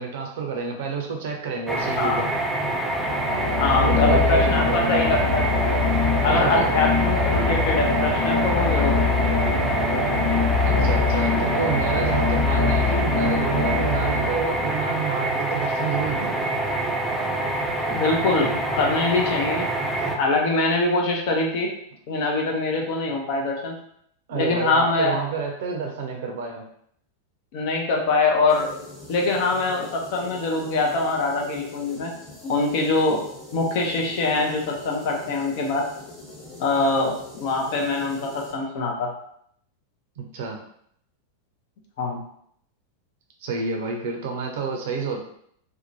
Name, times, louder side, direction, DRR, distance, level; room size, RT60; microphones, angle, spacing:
voice 1, 0.0-2.3 3.6-5.1 6.2-6.7 10.6-16.4 24.3-26.7 40.2-40.6 43.4-45.2, right 5 dB, 55° right, 2 dB, 0.6 m, -29 dB
sound 1, 1.7-20.2, right 2 dB, 5° right, 0.4 m, -26 dB
sound 2, 2.9-14.8, left 4 dB, 80° left, 1.0 m, -23 dB
voice 2, 3.6-5.5 6.2-9.5 17.9-19.7 20.1-21.7 22.1-23.7 24.3-25.2 27.5-28.7 29.1-32.1 32.4-33.2 33.5-35.8 36.6-39.1 42.0-42.2, left 3 dB, 50° left, 0 dB, 0.6 m, -23 dB
sound 3, 28.5-38.5, left 2 dB, 15° left, 1.1 m, -42 dB
2.7 x 2.2 x 2.7 m, 0.67 s
figure-of-eight pair, 90°, 0 cm